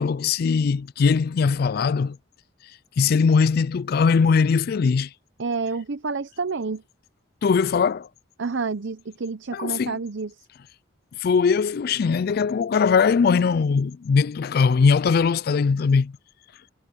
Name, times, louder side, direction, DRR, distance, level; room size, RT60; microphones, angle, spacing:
voice 1, 0.0-2.2 3.0-5.1 7.4-8.1 9.5-10.0 11.2-16.1, left 5 dB, 50° left, 0.3 m, -20 dB
voice 2, 5.4-6.8 8.4-10.4, right 4 dB, 75° right, 0.7 m, -29 dB
head